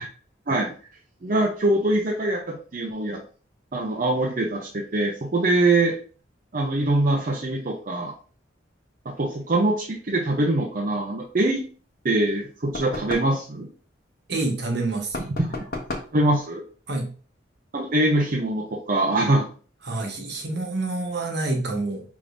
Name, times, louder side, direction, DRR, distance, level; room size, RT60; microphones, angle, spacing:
voice 1, 1.2-3.2 3.7-5.9 6.5-8.1 9.0-11.6 12.0-13.7 15.2-15.6 16.1-16.6 17.7-19.5, right 2 dB, 45° right, -1 dB, 0.6 m, -23 dB
sound 1, 12.7-13.4 15.1-16.2, left 2 dB, 50° left, 1.0 m, -33 dB
voice 2, 14.3-15.2 16.9-17.1 19.8-22.0, right 2 dB, 60° right, 1 dB, 1.2 m, -27 dB
5.1 x 3.6 x 2.6 m, 0.40 s
head